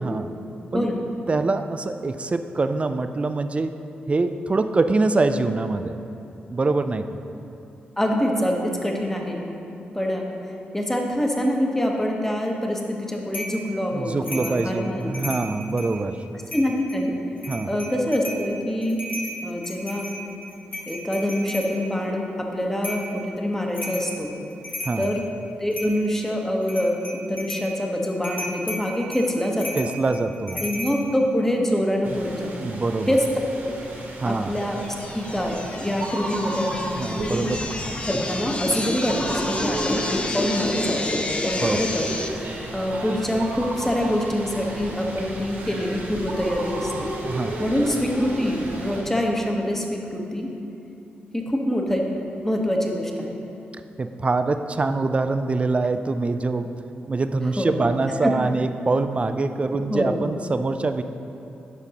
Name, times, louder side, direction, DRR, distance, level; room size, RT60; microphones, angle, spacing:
voice 1, 0.0-0.3 0.7-0.9 1.3-3.7 4.1-6.0 6.5-7.2 13.9-16.2 17.5-17.7 24.8-25.1 29.7-30.6 32.1-32.2 32.6-33.2 34.2-34.5 37.0-37.6 41.6-41.8 47.0-47.6 54.0-56.8 57.1-61.0, right 3 dB, 30° right, 9 dB, 0.3 m, -24 dB
voice 2, 8.0-9.4 9.9-10.3 10.7-15.3 16.5-17.1 17.7-19.0 19.4-20.1 20.9-24.3 25.0-25.2 25.6-27.0 27.3-29.8 30.5-32.5 33.1-33.2 33.6-33.7 34.2-34.8 35.1-37.5 38.1-42.1 42.7-47.1 47.6-50.5 51.3-52.1 52.4-53.3 57.6-57.9 58.2-58.3 59.9-60.3, equal, 10° left, 0 dB, 1.0 m, -25 dB
sound 1, 13.3-13.6 14.2-14.6 15.0-15.9 16.5-17.0 17.4-18.4 18.8-21.7 22.8-23.1 23.7-24.1 24.5-25.2 25.7-26.2 26.6-27.7 28.2-31.0, left 1 dB, 50° left, 1.3 m, -34 dB
sound 2, 32.0-49.0, right 2 dB, 70° right, 1.3 m, -34 dB
sound 3, 34.6-42.3, left 2 dB, 30° left, 0.5 m, -29 dB
10.5 x 5.1 x 2.9 m, 2.8 s
cardioid pair, 70°, 4 cm